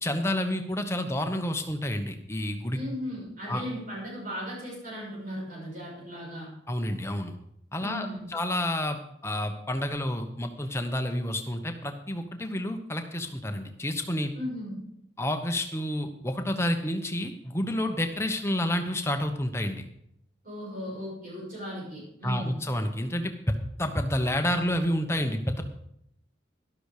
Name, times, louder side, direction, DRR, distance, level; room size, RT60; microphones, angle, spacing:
voice 1, 0.0-2.8 3.5-3.6 6.7-7.4 7.7-14.3 15.2-19.8 22.2-25.6, left 1 dB, 15° left, 6 dB, 1.1 m, -29 dB
voice 2, 2.7-6.5 7.8-8.3 14.3-14.8 20.4-22.5, equal, 45° right, -5 dB, 6.3 m, -37 dB
12.5 x 12.0 x 5.0 m, 0.75 s
head